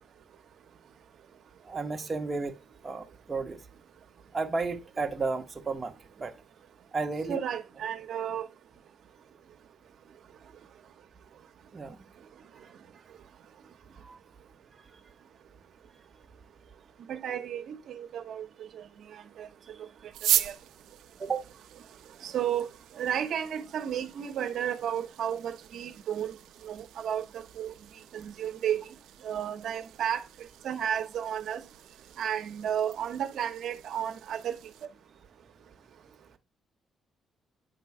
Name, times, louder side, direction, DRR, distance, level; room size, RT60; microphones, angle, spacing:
voice 1, 1.7-2.6 2.8-3.6 4.3-6.3 6.9-7.4 11.7-12.0 14.0-14.2 21.2-21.4, right 4 dB, 30° right, 1.0 m, -32 dB
voice 2, 7.3-8.5 17.1-18.4 18.7-18.8 19.1-19.5 20.4-20.5 22.2-22.7 23.0-26.4 26.6-27.7 28.1-28.8 29.2-30.2 30.6-31.6 32.2-34.5, right 9 dB, 70° right, 0.9 m, -32 dB
sound 1, 20.1-34.9, right 12 dB, 90° right, 0.7 m, -38 dB
9.3 x 3.8 x 4.8 m
cardioid pair, 90°, 0 cm